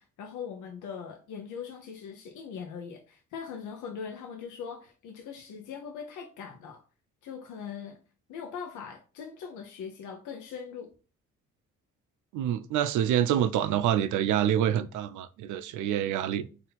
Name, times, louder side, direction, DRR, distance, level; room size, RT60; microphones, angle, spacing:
voice 1, 0.0-6.8 7.2-8.0 8.3-10.9, left 6 dB, 80° left, 0.7 m, -41 dB
voice 2, 12.3-16.5, right 10 dB, 80° right, 0.5 m, -26 dB
3.9 x 2.7 x 4.0 m
cardioid pair, 90°, 30 cm